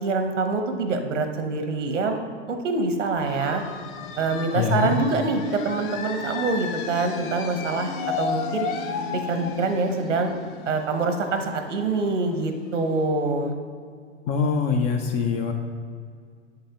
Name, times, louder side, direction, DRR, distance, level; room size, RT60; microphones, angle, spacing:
voice 1, 0.0-2.2 2.5-3.6 4.2-8.7 9.1-10.3 10.6-13.6, right 3 dB, 80° right, 6 dB, 1.0 m, -25 dB
sound 1, 3.2-12.6, left 5 dB, 45° left, 0.7 m, -34 dB
voice 2, 4.5-5.0 14.3-15.5, left 6 dB, 20° left, 5 dB, 0.3 m, -23 dB
8.1 x 7.6 x 2.9 m, 2.1 s
hypercardioid pair, 105°, 36 cm